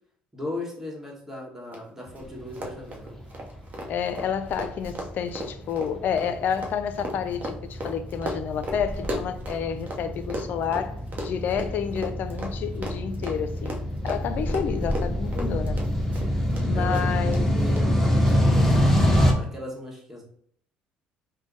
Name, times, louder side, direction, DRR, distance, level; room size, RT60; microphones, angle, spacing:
voice 1, 0.3-3.2 14.4-14.8 16.5-18.8 19.4-20.2, left 1 dB, 10° right, 1.4 m, -37 dB
Run, 1.7-1.8 2.1-2.2 2.5-10.0 10.3-16.6 16.9-17.4 17.8-17.9 18.3-18.4, right 1 dB, 45° right, 0.8 m, -35 dB
sound 1, 2.3-19.3, equal, 10° left, 0.7 m, -26 dB
voice 2, 3.9-11.0 11.2-13.8 14.0-15.8 16.7-17.5, left 7 dB, 55° left, 0.4 m, -29 dB
3.4 x 2.2 x 3.7 m
supercardioid pair, 75°, 4 cm